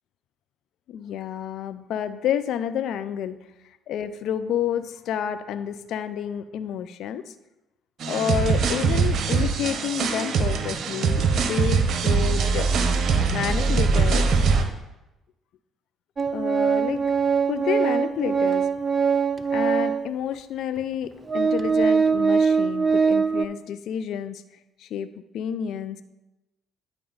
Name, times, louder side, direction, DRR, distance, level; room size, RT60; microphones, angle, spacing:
voice 1, 0.9-3.4 3.9-7.2 8.1-12.7 13.3-14.3 16.3-17.0 17.5-18.7 19.5-24.4 24.9-25.1 25.3-26.0, left 9 dB, 60° left, 12 dB, 0.5 m, -29 dB
sound 1, 8.0-14.6, right 5 dB, 55° right, 1.0 m, -22 dB
Organ, 16.2-20.1 20.8-20.9 21.3-23.5, right 5 dB, 30° right, 0.5 m, -22 dB
11.5 x 4.9 x 4.0 m, 0.97 s
hypercardioid pair, 50°, 0 cm